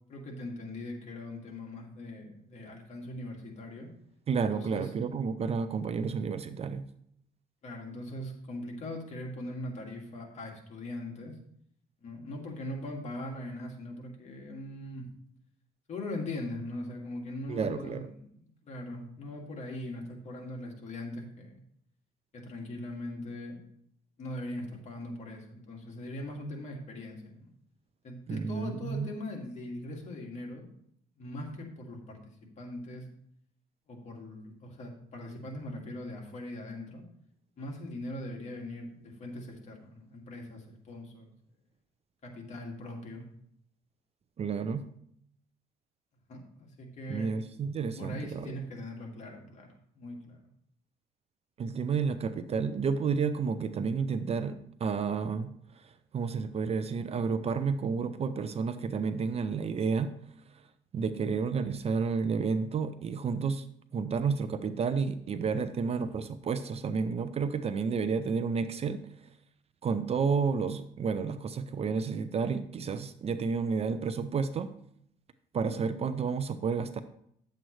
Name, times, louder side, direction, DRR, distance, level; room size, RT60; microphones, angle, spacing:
voice 1, 0.1-3.9 4.4-4.9 7.6-11.4 12.0-15.1 15.9-21.6 22.3-23.6 24.2-27.5 28.0-30.7 31.2-33.1 33.9-37.0 37.6-41.3 42.2-43.3 46.3-47.3 48.0-49.7 50.0-50.4, left 1 dB, 45° left, 0 dB, 2.2 m, -41 dB
voice 2, 4.3-6.9 17.5-18.1 28.3-29.1 44.4-44.9 47.1-48.5 51.6-60.1 60.9-63.7 63.9-69.0 69.8-74.7 75.5-77.0, right 5 dB, 35° right, 11 dB, 0.5 m, -31 dB
9.9 x 7.7 x 3.2 m, 0.70 s
cardioid pair, 110°, 17 cm